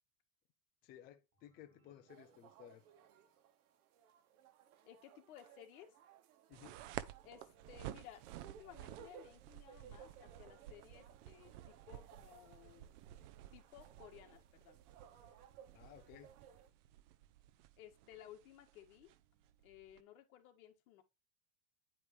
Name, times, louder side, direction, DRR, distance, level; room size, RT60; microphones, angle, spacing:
voice 1, 0.8-2.9 6.5-6.9 15.7-16.3, left 11 dB, 20° left, 0.5 m, -58 dB
sound 1, 1.3-4.1, right 5 dB, 35° right, 2.3 m, -78 dB
sound 2, 2.1-16.7, right 7 dB, 75° right, 1.4 m, -62 dB
voice 2, 4.8-5.9 7.2-12.9 13.5-14.8 17.8-19.1 19.6-21.0, left 11 dB, 70° left, 1.9 m, -58 dB
sound 3, 6.5-20.0, right 13 dB, 55° right, 0.7 m, -53 dB
9.7 x 5.1 x 3.2 m
supercardioid pair, 165°, 44 cm